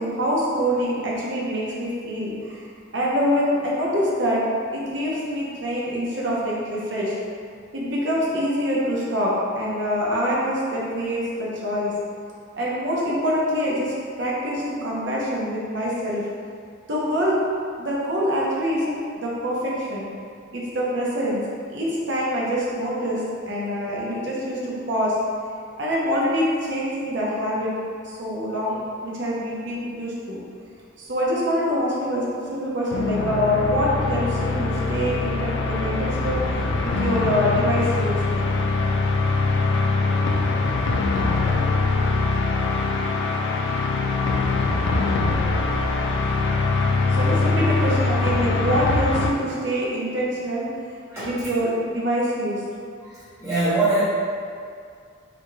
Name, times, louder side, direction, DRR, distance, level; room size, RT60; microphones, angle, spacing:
voice 1, 0.0-2.6 2.9-4.4 4.7-7.1 7.7-12.0 12.6-16.3 16.9-17.4 17.8-20.1 20.5-21.4 21.7-23.2 23.5-25.1 25.8-27.7 28.0-30.4 31.0-36.4 36.8-38.2 47.1-50.7 51.1-52.6, equal, 60° right, -5 dB, 0.7 m, -25 dB
sound 1, 32.8-49.3, left 3 dB, 70° left, 0.3 m, -23 dB
voice 2, 53.0-54.0, right 2 dB, 15° right, -14 dB, 0.5 m, -23 dB
3.4 x 2.5 x 3.1 m, 2.3 s
head